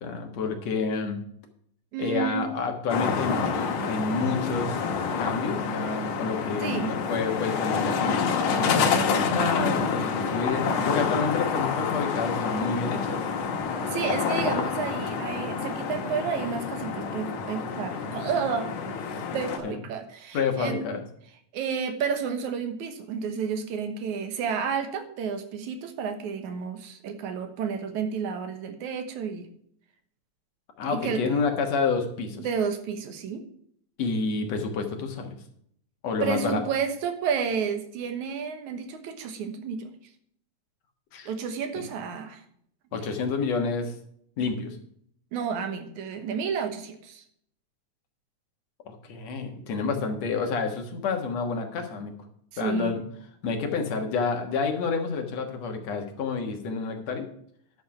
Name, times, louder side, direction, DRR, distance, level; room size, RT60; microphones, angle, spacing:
voice 1, 0.0-1.2 2.0-4.8 5.2-13.2 19.6-19.8 20.3-21.0 30.8-32.5 34.0-35.4 36.0-36.6 41.1-41.3 41.8-41.9 42.9-43.9 44.4-44.8 48.9-52.2 52.6-53.0 53.4-57.3, left 4 dB, 65° left, 4 dB, 2.5 m, -29 dB
voice 2, 1.9-2.6 6.6-6.9 13.9-18.7 19.3-20.9 21.5-29.5 30.9-31.2 32.4-33.4 36.2-39.9 41.3-42.4 42.9-43.0 45.3-47.2 52.5-53.0, right 6 dB, 80° right, 7 dB, 2.6 m, -31 dB
sound 1, 2.9-19.6, left 5 dB, 80° left, 2.7 m, -28 dB
11.0 x 6.3 x 5.8 m, 0.67 s
omnidirectional pair, 3.4 m